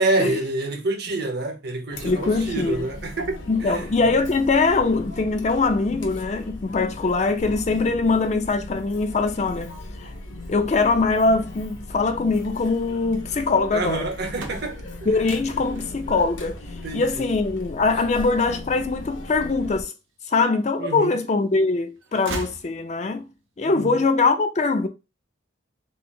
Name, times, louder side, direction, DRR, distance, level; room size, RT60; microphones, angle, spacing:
voice 1, 0.0-3.9 13.7-15.2 16.8-17.3 20.8-21.2 23.7-24.0, right 2 dB, 55° right, 0.9 m, -27 dB
Chatter, 1.9-19.8, left 1 dB, 75° left, 1.0 m, -38 dB
voice 2, 2.0-2.9 3.5-9.7 10.0-10.1 10.5-14.1 15.1-16.6 16.9-19.9 20.3-23.3 23.6-24.9, left 3 dB, 35° left, 0.4 m, -22 dB
sound 1, 14.2-20.0 20.6-21.4 21.7-23.3, right 3 dB, 80° right, 0.6 m, -40 dB
3.8 x 2.0 x 3.8 m
head